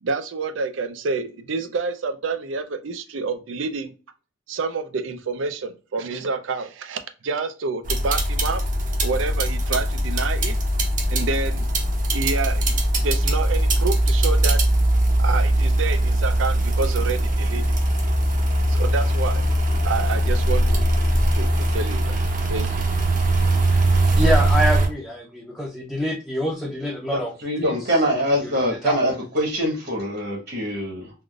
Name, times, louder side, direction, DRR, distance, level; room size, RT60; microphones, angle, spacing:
voice 1, 0.0-3.9 4.5-8.6 9.0-10.6 11.1-11.7 12.1-14.6 15.2-17.6 18.7-19.4 19.8-20.9 21.3-22.2 22.5-22.8, right 4 dB, 80° right, 9 dB, 0.5 m, -28 dB
sound 1, 7.9-24.9, right 1 dB, 45° right, 0.7 m, -21 dB
voice 2, 24.1-27.3 27.6-27.7 28.4-28.5 28.8-28.9, equal, 5° left, -5 dB, 0.6 m, -26 dB
voice 3, 27.1-31.1, equal, 60° right, 0 dB, 1.2 m, -24 dB
3.5 x 2.5 x 2.3 m, 0.34 s
head